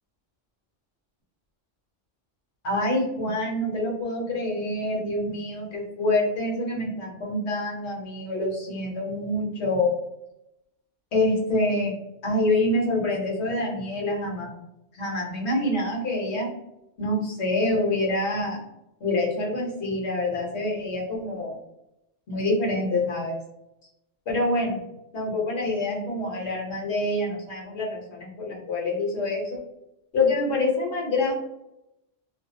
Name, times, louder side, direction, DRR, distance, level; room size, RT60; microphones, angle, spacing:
voice 1, 2.6-9.9 11.1-11.9 12.2-14.5 14.9-16.5 17.0-18.6 19.0-21.6 22.3-23.4 24.3-24.8 25.1-29.6 30.1-31.3, left 2 dB, 65° left, -3 dB, 1.2 m, -26 dB
2.6 x 2.4 x 2.6 m, 0.87 s
omnidirectional pair, 1.3 m